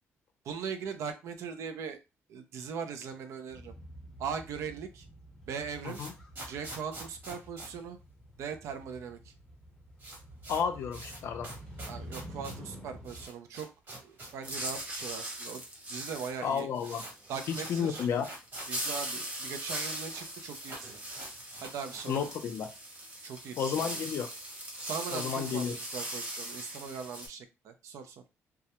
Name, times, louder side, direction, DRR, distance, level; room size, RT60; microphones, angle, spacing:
voice 1, 0.4-2.0 2.3-3.7 4.2-5.1 5.5-6.0 6.5-8.0 8.4-9.3 11.9-13.7 14.0-15.6 15.9-16.7 17.3-18.1 18.7-21.0 21.6-22.1 23.2-24.0 24.9-28.2, right 6 dB, 70° right, 8 dB, 0.4 m, -40 dB
Motorcycle, 3.5-13.3, equal, 10° left, 0.6 m, -49 dB
sound 1, 5.4-8.7 8.9-9.0 9.3-9.4 9.7-14.9 15.2-15.3 16.0-16.1 16.3-19.0 19.2-19.3 19.5-20.3 20.6-22.5, right 2 dB, 45° right, 1.1 m, -47 dB
voice 2, 10.5-11.5 16.4-17.0 17.5-18.3 22.1-22.7 23.6-24.3 25.1-25.7, left 7 dB, 55° left, 6 dB, 0.5 m, -32 dB
sound 2, 14.4-27.3, right 1 dB, 25° right, 0.7 m, -40 dB
2.3 x 2.1 x 2.8 m, 0.27 s
cardioid pair, 165°, 5 cm